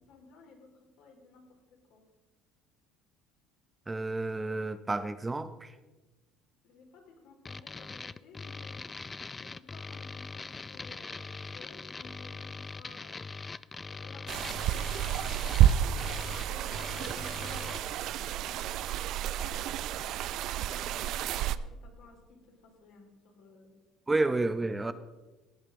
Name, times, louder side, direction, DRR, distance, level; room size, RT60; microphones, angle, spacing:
voice 1, 0.1-0.7 1.0-1.4 1.9-2.1 6.6-8.9 9.4-13.2 13.7-16.2 16.5-20.1 20.5-22.4 22.6-23.7 24.8-24.9, left 3 dB, 75° left, 1 dB, 3.2 m, -54 dB
voice 2, 3.9-5.7 24.1-24.9, right 2 dB, 15° right, 12 dB, 0.6 m, -30 dB
sound 1, 7.4-17.8, left 4 dB, 20° left, 0.3 m, -42 dB
sound 2, 14.3-21.6, right 11 dB, 60° right, 0.4 m, -30 dB
17.0 x 8.7 x 3.7 m, 1.1 s
cardioid pair, 120°, 0 cm